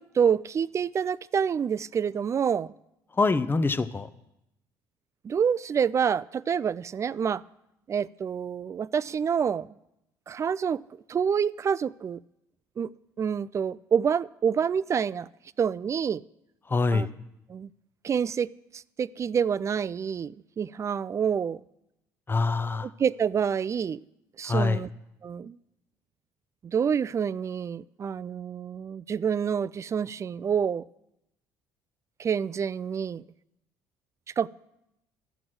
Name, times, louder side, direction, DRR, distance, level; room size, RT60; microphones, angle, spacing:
voice 1, 0.0-2.7 5.2-7.4 7.9-9.7 10.3-10.8 11.1-12.2 12.8-12.9 13.2-15.3 15.6-16.2 16.9-17.1 17.5-17.7 18.0-21.6 22.8-24.0 24.4-24.9 25.2-25.6 26.6-30.9 32.2-33.2 34.4-34.5, right 7 dB, 30° right, 20 dB, 0.3 m, -27 dB
voice 2, 3.1-4.1 16.7-17.1 22.3-22.9 24.4-24.8, left 3 dB, 25° left, 13 dB, 0.7 m, -25 dB
13.0 x 6.0 x 7.7 m, 0.87 s
hypercardioid pair, 65°, 9 cm